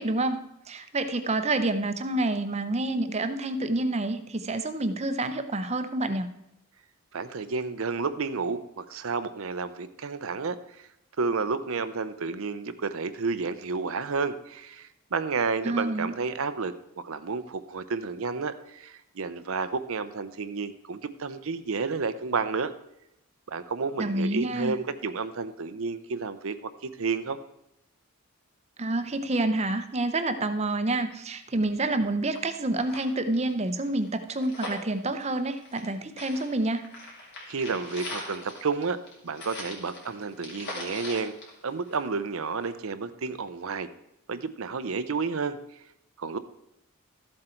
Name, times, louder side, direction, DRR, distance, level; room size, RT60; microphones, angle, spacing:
voice 1, 0.0-6.3 15.6-16.2 24.0-24.8 28.8-36.8, right 2 dB, 30° right, 9 dB, 0.7 m, -28 dB
voice 2, 7.1-10.6 11.2-22.7 23.5-26.6 26.8-27.4 37.5-41.3 41.6-43.9 44.3-45.6 46.2-46.4, right 4 dB, 70° right, 11 dB, 0.6 m, -31 dB
sound 1, 32.0-32.1 32.3-32.4 32.7-35.9 36.2-42.3 42.6-42.7, left 2 dB, 55° left, 3.0 m, -41 dB
13.5 x 7.8 x 4.4 m, 0.83 s
head